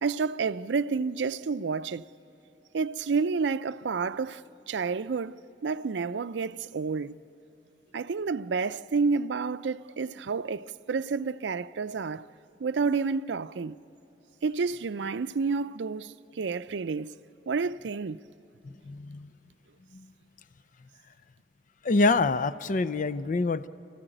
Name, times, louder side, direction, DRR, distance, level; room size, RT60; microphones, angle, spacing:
voice 1, 0.0-2.0 2.7-7.2 7.9-12.3 12.6-13.8 14.4-17.2 17.5-18.2, right 4 dB, 80° right, 0.5 m, -30 dB
voice 2, 18.9-19.3 19.9-20.1 21.8-23.7, left 3 dB, 50° left, 0.5 m, -26 dB
29.0 x 15.0 x 9.0 m
head